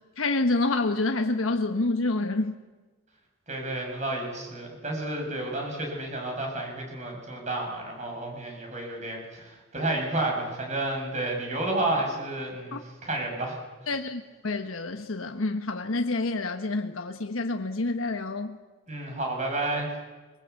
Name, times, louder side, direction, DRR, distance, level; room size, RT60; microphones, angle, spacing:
voice 1, 0.0-2.5 12.7-12.8 13.9-18.6, left 2 dB, 85° left, 6 dB, 1.2 m, -28 dB
voice 2, 3.5-13.6 18.9-19.9, right 2 dB, 35° right, 1 dB, 7.1 m, -31 dB
25.0 x 23.0 x 8.3 m, 1.3 s
head